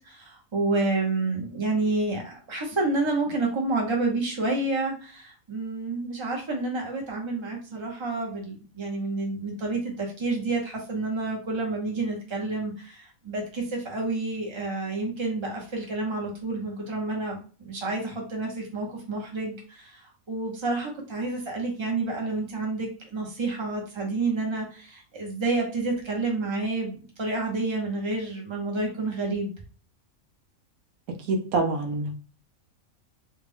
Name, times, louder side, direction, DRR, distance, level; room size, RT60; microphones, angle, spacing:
voice 1, 0.1-19.9 20.3-29.5, right 3 dB, 25° right, 0 dB, 0.9 m, -29 dB
voice 2, 31.3-32.1, right 3 dB, 90° right, 3 dB, 1.2 m, -25 dB
3.4 x 2.4 x 3.5 m, 0.38 s
omnidirectional pair, 1.4 m